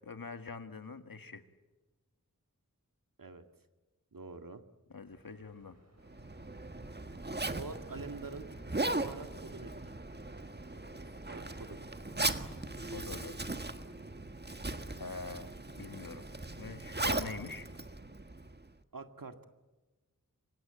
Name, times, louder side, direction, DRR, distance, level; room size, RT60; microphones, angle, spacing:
voice 1, 0.0-1.4 4.9-5.8 12.9-13.4 15.0-15.5 15.8-16.2 16.6-17.7, left 4 dB, 80° left, 8 dB, 1.7 m, -44 dB
voice 2, 4.1-4.6 7.6-8.7 9.0-9.9 11.3-11.9 18.9-19.5, right 3 dB, 75° right, 7 dB, 2.0 m, -46 dB
sound 1, 5.0-12.0, right 1 dB, 50° right, 6.2 m, -65 dB
Zipper (clothing), 6.0-18.7, right 2 dB, 30° right, 1.5 m, -38 dB
28.0 x 23.5 x 9.0 m, 1.2 s
wide cardioid pair, 55°, 34 cm